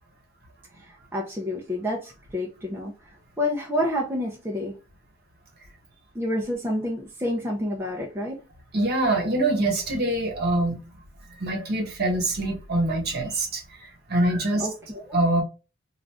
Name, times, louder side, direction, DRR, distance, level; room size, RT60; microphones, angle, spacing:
voice 1, 0.8-2.9 3.4-4.8 6.1-8.4 14.6-15.2, left 1 dB, 10° right, 0.5 m, -29 dB
voice 2, 8.7-10.8 11.3-13.6 14.1-14.7 15.1-15.4, right 2 dB, 50° right, 1.1 m, -24 dB
2.4 x 2.4 x 3.3 m
head